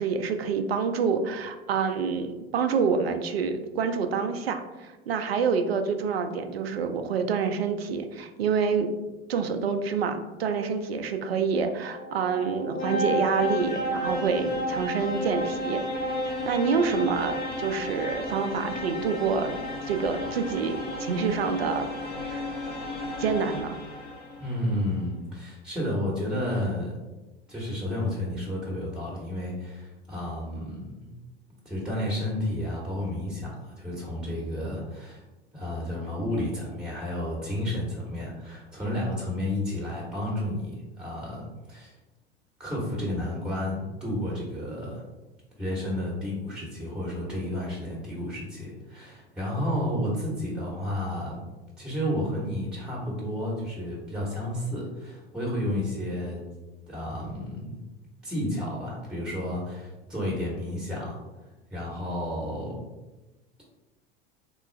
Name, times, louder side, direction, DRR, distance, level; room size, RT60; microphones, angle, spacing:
voice 1, 0.0-8.9 9.3-15.8 16.3-19.6 19.8-21.9 22.3-22.4 23.2-23.8, right 5 dB, 75° right, 7 dB, 0.5 m, -27 dB
sound 1, 11.6-24.4, left 1 dB, 20° left, 0.7 m, -32 dB
voice 2, 24.4-27.0 27.5-31.1 31.6-35.2 35.5-41.9 42.6-45.0 45.6-51.4 51.8-56.4 56.9-57.8 58.2-61.2 61.7-62.8, left 1 dB, 5° right, -4 dB, 1.1 m, -31 dB
3.7 x 2.3 x 3.1 m, 1.1 s
figure-of-eight pair, 75°, 31 cm